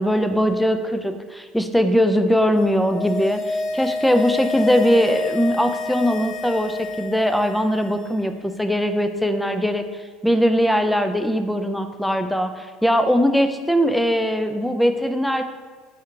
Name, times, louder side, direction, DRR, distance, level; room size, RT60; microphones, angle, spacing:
voice 1, 0.0-9.8 10.2-15.4, equal, 5° left, 7 dB, 0.3 m, -20 dB
sound 1, 2.6-8.1 8.4-8.5, left 3 dB, 40° left, 1.1 m, -28 dB
4.4 x 2.8 x 3.7 m, 1.4 s
supercardioid pair, 95°, 0 cm